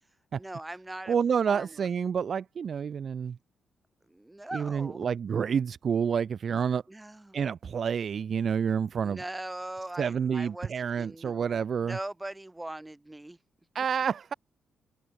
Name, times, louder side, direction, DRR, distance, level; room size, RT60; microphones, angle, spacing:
voice 1, 0.4-1.2 1.5-1.9 4.1-5.1 6.9-7.4 9.0-11.3 11.8-13.4, right 1 dB, 10° right, 4.0 m, -40 dB
voice 2, 1.1-3.4 4.5-6.8 7.3-9.2 10.0-12.0 13.7-14.3, right 7 dB, 50° right, 0.4 m, -28 dB
open air
cardioid pair, 120°, 0 cm